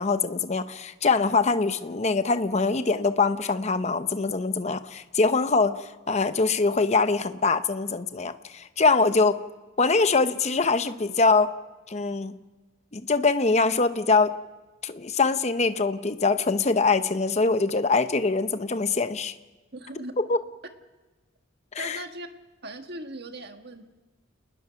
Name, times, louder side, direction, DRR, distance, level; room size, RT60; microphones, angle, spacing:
voice 1, 0.0-9.4 9.8-11.5 11.9-12.4 12.9-14.3 14.8-19.3 20.2-20.4 21.7-22.0, left 4 dB, 35° left, 11 dB, 0.8 m, -23 dB
voice 2, 19.7-20.2 21.8-22.3 22.6-23.9, right 1 dB, 55° right, 6 dB, 1.6 m, -39 dB
28.5 x 20.0 x 5.8 m, 1.2 s
head